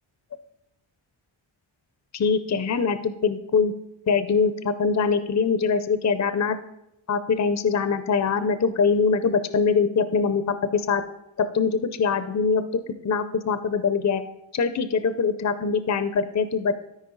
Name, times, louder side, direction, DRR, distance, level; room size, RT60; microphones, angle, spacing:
voice 1, 2.1-3.7 4.1-6.6 7.1-11.0 11.4-14.2 14.5-16.8, left 5 dB, 35° left, 11 dB, 0.5 m, -23 dB
13.0 x 5.1 x 3.9 m, 0.84 s
wide cardioid pair, 115°, 49 cm